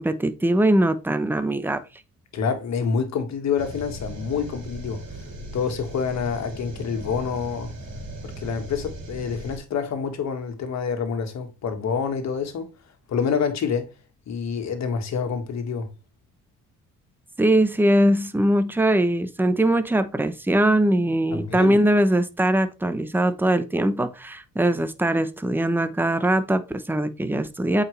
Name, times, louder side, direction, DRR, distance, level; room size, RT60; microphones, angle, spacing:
voice 1, 0.0-1.8 17.4-27.8, right 1 dB, 5° right, 0.8 m, -21 dB
voice 2, 2.3-5.0 5.5-7.7 8.2-12.7 13.1-13.9 14.3-15.9 21.3-21.8, left 6 dB, 65° left, 1.8 m, -27 dB
sound 1, 3.6-9.6, right 1 dB, 55° right, 3.0 m, -38 dB
8.3 x 5.0 x 3.2 m
cardioid pair, 90°, 30 cm